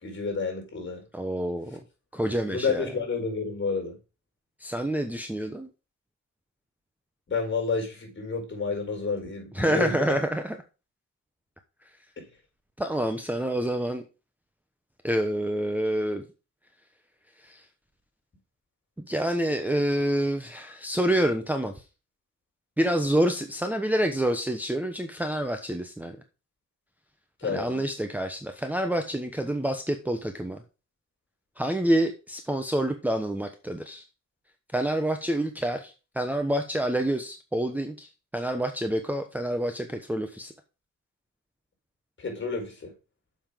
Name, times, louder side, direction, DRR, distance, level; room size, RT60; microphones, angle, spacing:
voice 1, 0.0-1.0 2.5-4.0 7.3-10.2 12.2-12.3 27.4-27.8 42.2-42.9, left 4 dB, 40° left, 2 dB, 4.6 m, -30 dB
voice 2, 1.1-1.8 2.1-2.9 4.6-5.7 9.5-10.6 12.8-14.0 15.0-16.2 17.4-17.7 19.1-21.8 22.8-26.2 27.4-30.6 31.6-34.0 34.7-40.5, right 1 dB, 5° right, 4 dB, 1.0 m, -27 dB
7.1 x 5.8 x 5.1 m, 0.32 s
cardioid pair, 90°, 30 cm